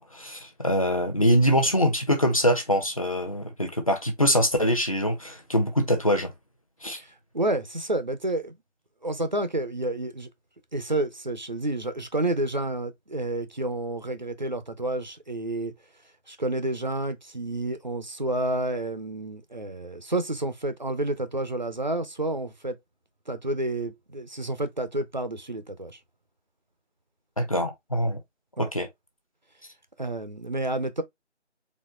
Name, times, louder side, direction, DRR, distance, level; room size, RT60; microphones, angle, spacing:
voice 1, 0.0-6.3 6.8-7.0 27.4-28.2 28.6-28.9, equal, 30° left, 0.8 m, -24 dB
voice 2, 7.3-8.5 9.0-10.3 10.7-15.7 16.3-22.8 23.3-26.0 28.6-28.7 30.0-31.0, right 1 dB, 40° right, 0.6 m, -29 dB
4.2 x 3.4 x 3.1 m
figure-of-eight pair, 165°, 36 cm